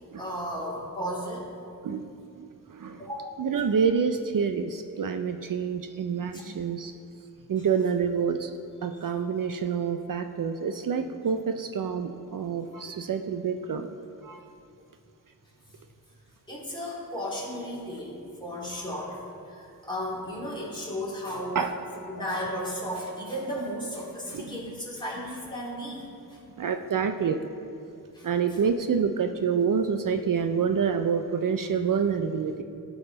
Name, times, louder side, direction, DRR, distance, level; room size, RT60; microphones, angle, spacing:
voice 1, 0.2-1.5 3.0-3.3 6.3-6.4 16.5-21.6 22.1-26.4 28.1-28.3, equal, 15° left, -6 dB, 2.6 m, -34 dB
voice 2, 1.8-3.1 3.4-6.9 7.5-8.5 8.8-13.9 14.2-14.5 21.5-21.7 24.3-24.7 26.6-27.4 28.2-32.6, right 6 dB, 65° right, 7 dB, 0.5 m, -27 dB
15.5 x 5.7 x 3.9 m, 2.5 s
wide cardioid pair, 85°, 36 cm